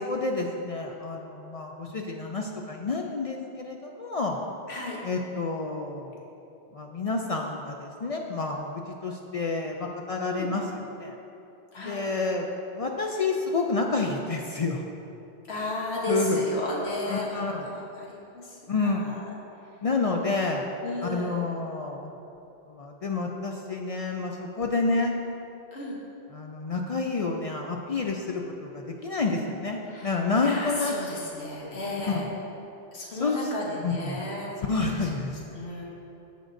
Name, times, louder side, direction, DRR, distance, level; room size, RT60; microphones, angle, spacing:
voice 1, 0.0-4.4 5.0-6.2 6.7-10.6 11.0-11.1 11.9-12.5 12.7-14.8 15.5-15.7 16.1-16.4 17.1-17.6 18.7-19.1 19.8-20.6 21.0-22.1 22.7-25.1 26.3-30.9 31.6-31.8 32.1-32.2 33.2-33.4 33.8-34.2 34.7-35.6, left 3 dB, 55° left, 1 dB, 0.4 m, -29 dB
voice 2, 15.5-19.3 20.8-21.4 25.7-26.0 29.9-32.2 32.9-34.5 34.9-35.1 35.5-35.8, left 1 dB, 85° left, -3 dB, 1.3 m, -34 dB
14.0 x 5.2 x 2.6 m, 2.9 s
omnidirectional pair, 1.1 m